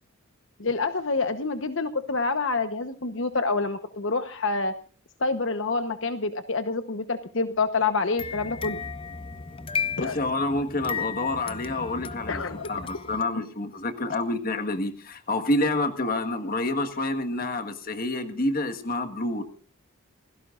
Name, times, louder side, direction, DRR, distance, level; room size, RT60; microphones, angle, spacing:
voice 1, 0.6-4.7 5.2-8.8 10.0-10.2 12.3-12.7, left 3 dB, 65° left, 9 dB, 1.1 m, -27 dB
sound 1, 8.2-13.2, left 5 dB, 25° left, 0.7 m, -34 dB
voice 2, 10.0-12.4 12.7-19.4, left 2 dB, 45° left, 7 dB, 1.6 m, -28 dB
28.5 x 17.0 x 2.5 m, 0.41 s
head